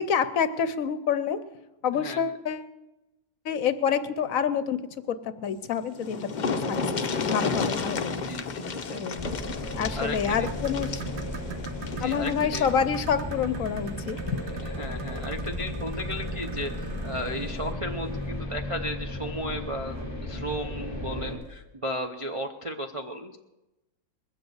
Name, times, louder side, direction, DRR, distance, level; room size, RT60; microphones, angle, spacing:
voice 1, 0.0-1.4 1.8-2.7 3.4-4.8 5.1-6.8 7.1-8.2 8.9-9.3 9.7-11.0 12.0-14.4, left 7 dB, 65° left, 12 dB, 1.0 m, -27 dB
voice 2, 1.9-2.2 6.4-6.6 8.0-9.2 10.0-10.5 11.9-12.7 14.6-20.0 20.2-23.4, equal, 35° right, 3 dB, 0.5 m, -35 dB
sound 1, 5.6-5.7 5.9-12.8 14.1-14.2 14.6-14.7, left 4 dB, 45° left, 0.6 m, -32 dB
sound 2, 9.2-21.3, left 1 dB, 15° right, 3.2 m, -35 dB
sound 3, 10.1-18.6 19.9-20.1 20.6-20.7 21.3-21.4, right 7 dB, 85° right, 1.5 m, -42 dB
20.5 x 7.9 x 8.0 m, 1.0 s
omnidirectional pair, 1.7 m